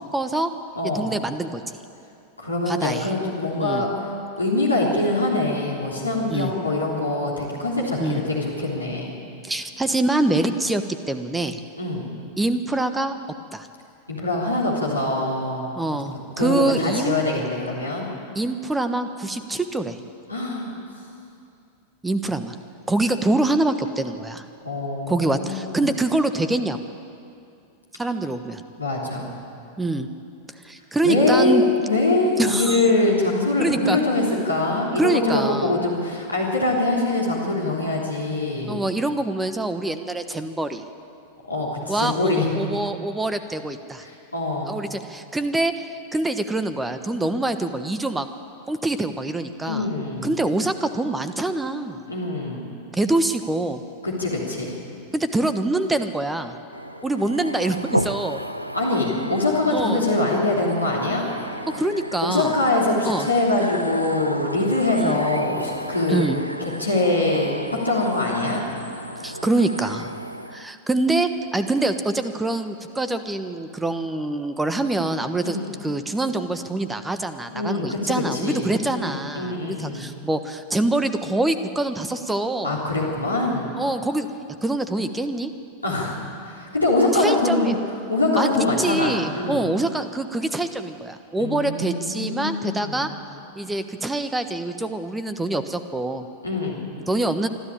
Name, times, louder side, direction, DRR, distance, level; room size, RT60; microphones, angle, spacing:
voice 1, 0.1-0.5 0.9-1.6 2.7-3.1 3.6-3.8 6.3-6.5 8.0-8.2 9.4-10.8 11.1-11.6 12.4-13.2 13.5-13.7 15.8-17.4 18.3-20.0 22.0-22.6 22.9-24.4 25.1-26.8 28.0-28.6 29.8-30.1 30.6-31.6 32.4-32.9 33.6-34.0 34.9-35.8 38.7-40.8 41.9-44.0 44.7-48.3 48.7-49.9 50.2-52.0 52.9-53.8 55.1-56.5 57.0-58.4 59.7-60.0 61.7-62.6 63.0-63.3 64.9-65.2 66.1-66.4 69.2-70.2 70.5-75.6 75.8-82.8 83.8-84.3 84.6-85.5 87.1-87.8 88.4-93.1 93.6-96.2 97.1-97.5, right 2 dB, 10° right, 10 dB, 1.2 m, -25 dB
voice 2, 0.8-1.1 2.4-4.1 4.4-9.1 11.8-12.0 14.1-15.7 16.4-18.1 20.3-20.7 24.6-25.8 28.8-29.3 31.0-38.8 41.5-42.6 44.0-44.7 49.6-50.3 52.1-52.7 54.0-54.8 58.7-61.3 62.2-66.3 66.6-67.5 67.8-68.6 75.4-75.8 77.5-80.1 82.6-83.7 85.8-86.2 86.6-87.8 88.1-89.6 91.4-93.1 96.4-96.9, left 2 dB, 85° left, -3 dB, 3.4 m, -23 dB
sound 1, 56.7-70.7, equal, 90° right, 0.6 m, -33 dB
25.0 x 12.5 x 8.8 m, 2.5 s
figure-of-eight pair, 90°, 0 cm